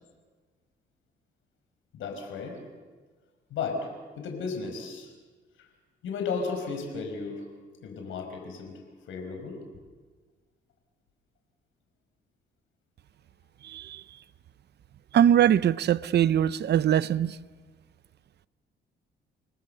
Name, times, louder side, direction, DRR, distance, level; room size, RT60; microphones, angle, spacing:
voice 1, 1.9-2.6 3.5-3.9 4.2-5.1 5.6-5.7 6.0-7.4 7.8-8.8 9.1-9.6, left 4 dB, 80° left, 5.2 m, -34 dB
voice 2, 13.6-14.0 15.1-17.4, right 10 dB, 60° right, 0.7 m, -22 dB
29.0 x 19.5 x 6.9 m
cardioid pair, 90°, 20 cm